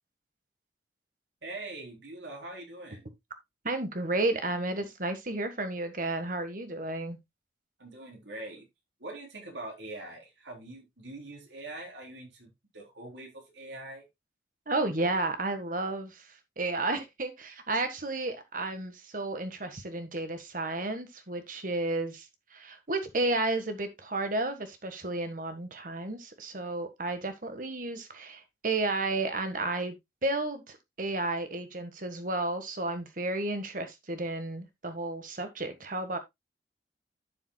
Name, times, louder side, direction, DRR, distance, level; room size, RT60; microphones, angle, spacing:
voice 1, 1.4-3.1 7.8-8.7 9.0-14.1, right 2 dB, 85° right, 3.7 m, -43 dB
voice 2, 3.6-7.2 14.7-16.2 16.6-22.3 22.5-29.9 30.2-36.2, right 2 dB, 50° right, 1.6 m, -32 dB
12.0 x 7.1 x 2.3 m
head